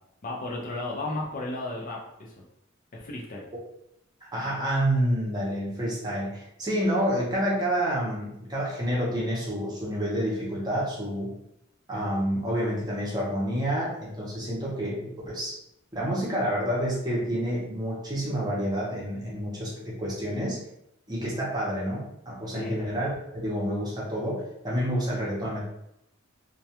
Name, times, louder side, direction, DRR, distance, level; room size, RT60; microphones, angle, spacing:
voice 1, 0.2-2.3 2.9-3.4 22.5-22.8, left 2 dB, 40° left, -2 dB, 0.4 m, -34 dB
voice 2, 4.3-11.3 11.9-15.5 15.9-20.6 21.1-25.7, equal, 20° right, -5 dB, 0.7 m, -28 dB
2.2 x 2.2 x 2.8 m, 0.79 s
head